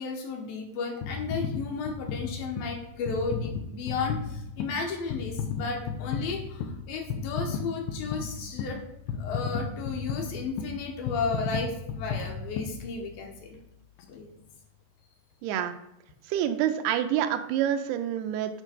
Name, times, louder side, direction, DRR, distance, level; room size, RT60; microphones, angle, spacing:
voice 1, 0.0-8.8 9.2-13.6 14.1-14.4, left 4 dB, 75° left, 2 dB, 2.6 m, -34 dB
sound 1, 1.0-13.4 14.0-14.1, left 6 dB, 90° left, 2.8 m, -34 dB
voice 2, 15.4-15.7 16.3-18.6, right 10 dB, 85° right, 7 dB, 2.6 m, -27 dB
8.3 x 4.6 x 5.1 m, 0.84 s
omnidirectional pair, 4.6 m